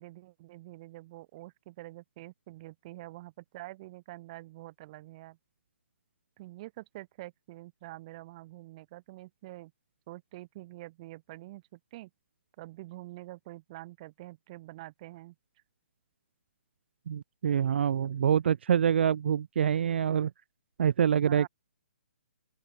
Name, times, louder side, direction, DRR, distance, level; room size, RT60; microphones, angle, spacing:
voice 1, 0.0-5.4 6.4-9.7 10.1-12.1 12.6-15.3 21.2-21.5, right 18 dB, 35° right, 3.1 m, -46 dB
voice 2, 17.1-20.3 20.8-21.5, right 8 dB, 60° right, 0.4 m, -26 dB
open air
hypercardioid pair, 155°, 7 cm